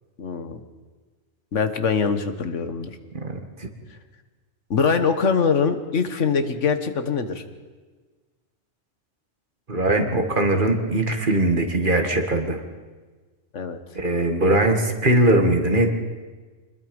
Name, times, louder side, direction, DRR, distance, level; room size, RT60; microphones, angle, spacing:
voice 1, 0.2-0.6 1.5-2.9 3.9-4.0 4.7-7.4 13.5-13.8, left 5 dB, 90° left, 9 dB, 1.7 m, -23 dB
voice 2, 3.1-3.7 9.7-12.6 14.0-15.9, right 1 dB, 45° right, 5 dB, 2.0 m, -21 dB
26.0 x 20.5 x 5.3 m, 1.4 s
omnidirectional pair, 1.2 m